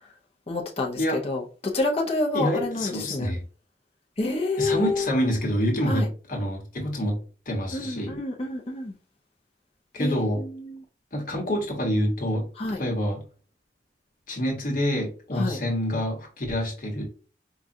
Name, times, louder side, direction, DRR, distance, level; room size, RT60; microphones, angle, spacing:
voice 1, 0.5-3.3 4.2-5.0 5.9-6.1 7.7-8.9 10.0-10.8 12.6-12.8 15.4-15.6, left 2 dB, 35° left, 0.6 m, -28 dB
voice 2, 2.3-3.4 4.6-7.2 7.5-8.2 9.9-10.4 11.1-12.5 12.8-13.2 14.3-17.0, equal, 50° left, 1.1 m, -27 dB
4.8 x 2.3 x 2.6 m
head